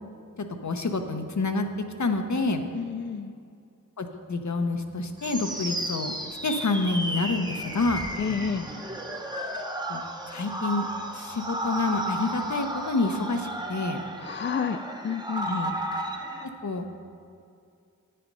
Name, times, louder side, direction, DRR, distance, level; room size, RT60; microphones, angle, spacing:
voice 1, 0.6-1.7 2.0-2.6 4.0-6.1 6.4-8.1 9.9-10.0 10.3-10.9 11.1-14.0 15.4-15.7 16.4-16.9, left 3 dB, 60° left, 6 dB, 0.8 m, -28 dB
voice 2, 2.7-3.4 8.2-8.7 14.2-14.8 15.0-15.5, left 6 dB, 35° left, 8 dB, 0.4 m, -30 dB
sound 1, 5.2-16.5, right 1 dB, 15° right, 0.9 m, -33 dB
8.9 x 7.6 x 5.4 m, 2.3 s
cardioid pair, 40°, 33 cm